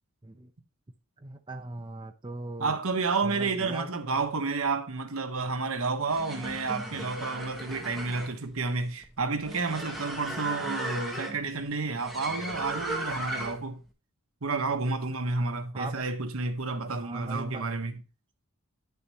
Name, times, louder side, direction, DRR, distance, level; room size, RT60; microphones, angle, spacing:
voice 1, 1.2-2.8 3.2-3.9 15.7-16.0 16.9-17.6, right 2 dB, 20° right, 0.6 m, -39 dB
voice 2, 2.6-13.8 14.4-18.0, right 4 dB, 70° right, 1.1 m, -30 dB
sound 1, 6.0-13.8, right 1 dB, ahead, 1.3 m, -37 dB
9.5 x 6.8 x 2.9 m
head